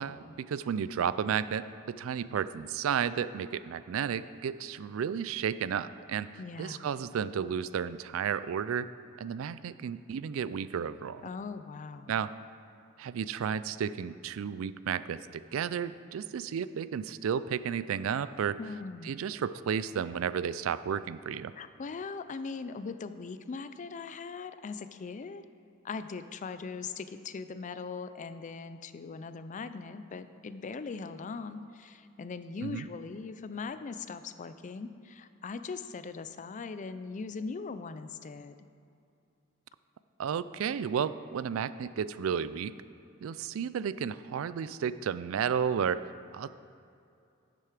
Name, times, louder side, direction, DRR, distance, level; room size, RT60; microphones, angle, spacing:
voice 1, 0.0-6.3 6.6-8.9 9.2-11.2 12.1-12.3 13.0-18.6 19.0-21.5 32.6-32.9 40.2-42.7 43.2-46.0 46.3-46.5, right 7 dB, 75° right, 15 dB, 0.3 m, -32 dB
voice 2, 6.4-6.9 11.2-12.1 18.6-19.2 21.5-25.4 25.8-38.6, left 4 dB, 40° left, 12 dB, 0.4 m, -40 dB
10.5 x 7.7 x 5.0 m, 2.5 s
head